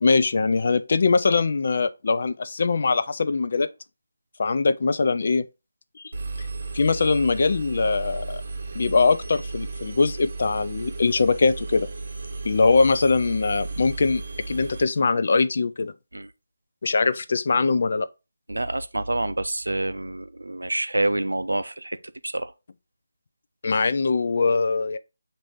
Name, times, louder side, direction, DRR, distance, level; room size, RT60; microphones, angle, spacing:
voice 1, 0.0-3.7 4.4-5.5 6.0-6.1 6.7-8.4 8.7-11.9 12.4-15.9 16.8-18.1 23.6-25.0, left 4 dB, 50° left, 0.3 m, -22 dB
Engine, 6.1-14.8, right 3 dB, 45° right, 0.8 m, -34 dB
voice 2, 18.5-22.0 22.2-22.5, right 2 dB, 75° right, 0.4 m, -27 dB
6.2 x 2.6 x 3.3 m
figure-of-eight pair, 155°, 0 cm